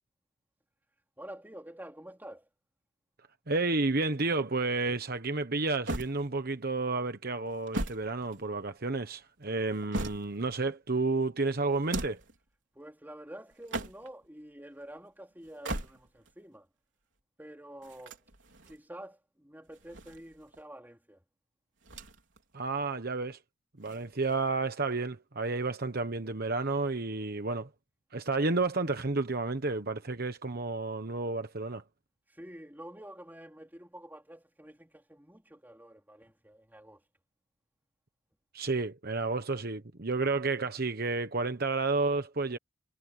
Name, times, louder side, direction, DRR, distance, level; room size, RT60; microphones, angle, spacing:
voice 1, 1.2-2.5 12.7-16.7 17.4-18.3 18.7-21.2 32.3-37.0, right 1 dB, 10° right, 4.0 m, -48 dB
voice 2, 3.5-12.2 22.5-23.4 23.8-27.7 28.1-31.8 38.5-42.6, right 3 dB, 50° right, 1.1 m, -31 dB
sound 1, 5.9-6.7 7.5-8.8 9.5-10.6 11.7-12.4 13.5-14.3 15.4-16.3 17.8-18.8 19.7-20.6 21.8-22.4 22.7-22.8 23.8-24.6, right 2 dB, 65° right, 4.5 m, -39 dB
head